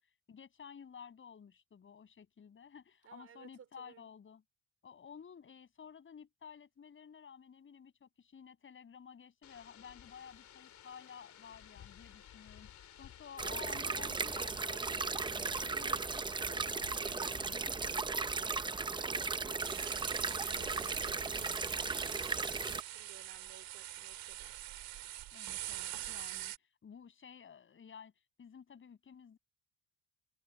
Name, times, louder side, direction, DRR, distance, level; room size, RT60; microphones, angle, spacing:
voice 1, 0.3-4.4 4.8-18.1 25.3-28.1 28.4-29.4, left 7 dB, 30° left, 7.2 m, -53 dB
voice 2, 3.0-4.1 18.9-24.5, right 8 dB, 40° right, 4.2 m, -57 dB
sound 1, 9.4-17.9, left 10 dB, 50° left, 3.3 m, -56 dB
sound 2, 13.4-22.8, right 4 dB, 15° right, 0.5 m, -36 dB
sound 3, 19.6-26.6, right 14 dB, 70° right, 2.4 m, -45 dB
cardioid pair, 145°, 37 cm